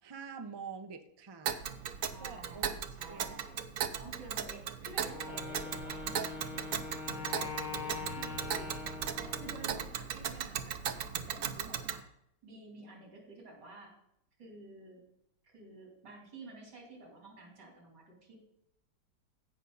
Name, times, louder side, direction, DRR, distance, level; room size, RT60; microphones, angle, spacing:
voice 1, 0.0-1.6 2.2-2.7 3.1-3.4, right 5 dB, 35° right, 7 dB, 0.3 m, -46 dB
Tick, 1.4-12.0, right 8 dB, 60° right, 1.0 m, -37 dB
voice 2, 2.1-3.6 4.0-6.0 6.3-6.8 7.2-8.7 9.2-12.0 12.4-13.9 14.4-15.0 15.4-18.4, right 2 dB, 85° right, 0 dB, 4.2 m, -51 dB
Wind instrument woodwind instrument, 5.1-9.9, left 5 dB, 30° left, 1.2 m, -43 dB
16.0 x 5.8 x 4.0 m, 0.78 s
omnidirectional pair, 1.8 m